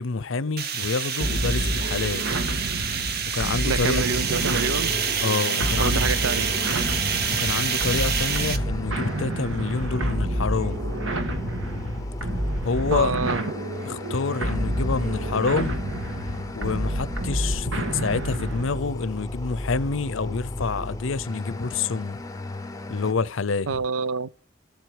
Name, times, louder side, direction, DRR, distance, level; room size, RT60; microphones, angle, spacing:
voice 1, 0.0-2.3 3.3-4.0 5.2-6.1 7.4-10.8 12.6-13.2 13.8-15.8 16.5-22.2 22.9-23.7, left 4 dB, 70° left, 0.7 m, -27 dB
sound 1, 0.6-8.6, right 7 dB, 50° right, 1.0 m, -27 dB
sound 2, 1.2-18.8, right 1 dB, 70° right, 1.6 m, -29 dB
voice 2, 3.6-4.9 5.8-6.5 12.9-13.5 23.7-24.3, right 4 dB, 85° right, 0.6 m, -27 dB
sound 3, 4.0-23.1, left 2 dB, 15° left, 0.7 m, -35 dB
13.5 x 7.8 x 4.9 m
head